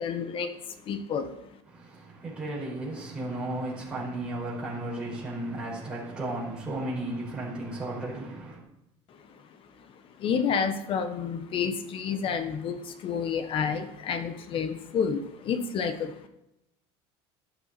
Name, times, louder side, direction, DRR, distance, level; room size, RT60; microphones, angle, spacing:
voice 1, 0.0-1.3 10.2-16.3, left 6 dB, 45° left, 1.3 m, -30 dB
voice 2, 1.7-8.6, right 1 dB, 5° right, 5.0 m, -34 dB
12.0 x 10.5 x 4.3 m
supercardioid pair, 120°, 12 cm